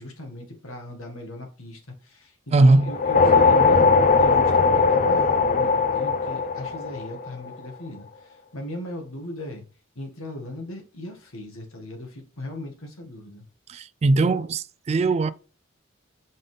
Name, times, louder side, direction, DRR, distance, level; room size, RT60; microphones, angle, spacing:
voice 1, 0.0-2.3 2.6-9.6 10.0-13.5, left 1 dB, 75° left, 1.9 m, -38 dB
voice 2, 2.5-2.9 13.7-15.3, right 2 dB, 30° right, 0.3 m, -19 dB
sound 1, 2.8-7.4, left 4 dB, 40° left, 0.5 m, -19 dB
5.6 x 5.3 x 3.3 m
head